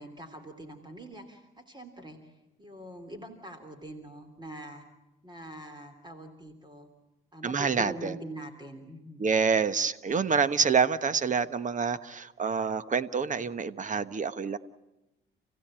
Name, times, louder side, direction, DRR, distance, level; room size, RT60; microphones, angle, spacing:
voice 1, 0.0-2.3 2.6-4.8 5.2-6.9 7.3-9.2, right 1 dB, 20° right, 7 dB, 3.3 m, -44 dB
voice 2, 7.4-8.1 9.2-14.6, right 5 dB, 40° right, 14 dB, 1.2 m, -27 dB
30.0 x 16.0 x 8.9 m, 0.95 s
cardioid pair, 90°, 20 cm